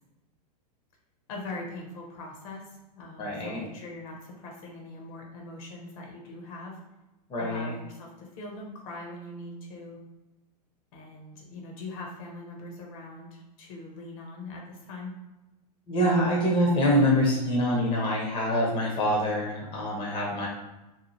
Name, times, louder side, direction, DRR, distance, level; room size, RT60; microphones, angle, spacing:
voice 1, 1.3-6.8 7.4-10.0 10.9-15.1, left 2 dB, 55° left, 0 dB, 0.9 m, -41 dB
voice 2, 3.2-3.6 7.3-7.7 15.9-20.5, equal, 25° left, -3 dB, 0.8 m, -25 dB
2.7 x 2.0 x 3.1 m, 1.0 s
hypercardioid pair, 120°, 21 cm